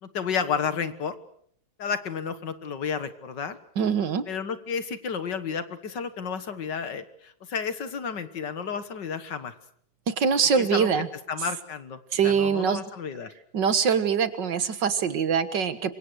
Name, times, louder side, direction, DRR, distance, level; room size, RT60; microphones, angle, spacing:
voice 1, 0.0-1.1 1.8-3.6 4.3-9.6 10.6-10.9 11.3-13.3, left 6 dB, 60° left, 11 dB, 2.1 m, -31 dB
voice 2, 3.8-4.2 10.1-11.1 12.1-12.8 13.5-15.9, right 6 dB, 65° right, 12 dB, 2.1 m, -23 dB
27.0 x 24.5 x 6.4 m, 0.65 s
omnidirectional pair, 2.2 m